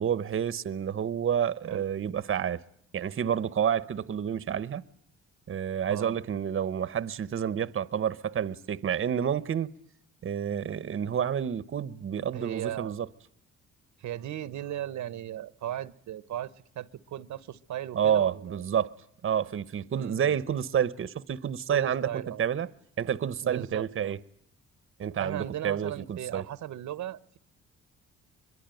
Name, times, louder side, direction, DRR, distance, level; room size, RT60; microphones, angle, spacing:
voice 1, 0.0-2.6 2.9-4.8 5.5-9.7 10.2-13.1 17.9-18.9 19.2-22.7 23.0-24.2 25.0-26.4, right 8 dB, 45° right, 1.0 m, -29 dB
voice 2, 12.3-12.9 14.0-18.6 20.0-20.4 21.7-22.4 23.4-24.1 25.2-27.4, right 12 dB, 70° right, 1.0 m, -37 dB
23.0 x 22.5 x 9.1 m
cardioid pair, 90°, 30 cm